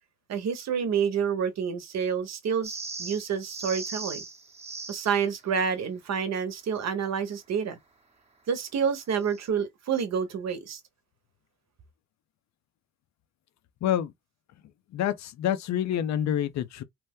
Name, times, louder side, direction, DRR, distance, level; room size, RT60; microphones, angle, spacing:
voice 1, 0.3-4.2 4.9-7.8 8.5-10.8, right 7 dB, 60° right, 0.9 m, -28 dB
sound 1, 2.6-5.2 9.2-9.5, right 3 dB, 20° right, 0.9 m, -38 dB
voice 2, 13.8-14.1 14.9-16.8, left 10 dB, 65° left, 0.6 m, -27 dB
2.9 x 2.1 x 3.5 m
cardioid pair, 90°, 30 cm